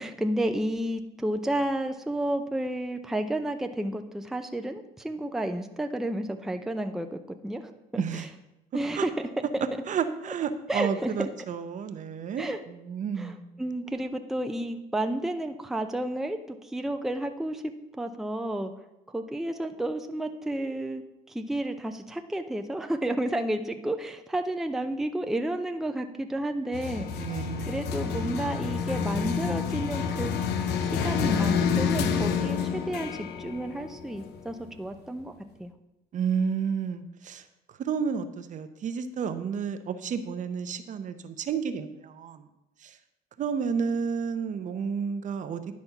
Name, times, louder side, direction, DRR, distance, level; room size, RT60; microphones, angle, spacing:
voice 1, 0.0-8.3 8.7-9.7 10.7-11.3 12.4-12.6 13.2-18.7 19.1-27.3 27.7-30.3 30.8-35.3 35.6-35.7, right 1 dB, ahead, 6 dB, 0.5 m, -31 dB
voice 2, 8.0-8.3 8.9-9.1 9.9-13.6 27.2-28.0 36.1-42.4 42.8-43.0 43.4-45.7, right 6 dB, 50° right, 10 dB, 0.7 m, -31 dB
sound 1, 26.7-34.7, left 6 dB, 80° left, 0.7 m, -28 dB
10.5 x 4.2 x 5.8 m, 0.91 s
cardioid pair, 110°, 17 cm